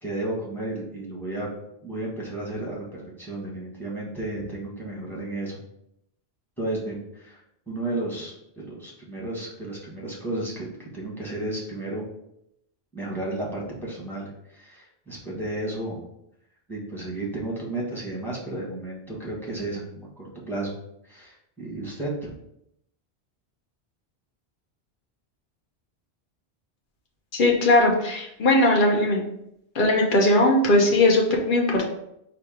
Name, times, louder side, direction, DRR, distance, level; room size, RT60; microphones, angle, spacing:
voice 1, 0.0-1.5 1.8-5.6 6.6-12.1 12.9-16.0 16.7-20.7 21.0-22.3, right 2 dB, ahead, -4 dB, 1.3 m, -33 dB
voice 2, 27.3-29.2 29.7-31.8, left 1 dB, 55° left, -1 dB, 1.0 m, -19 dB
4.3 x 2.5 x 4.8 m, 0.79 s
omnidirectional pair, 1.1 m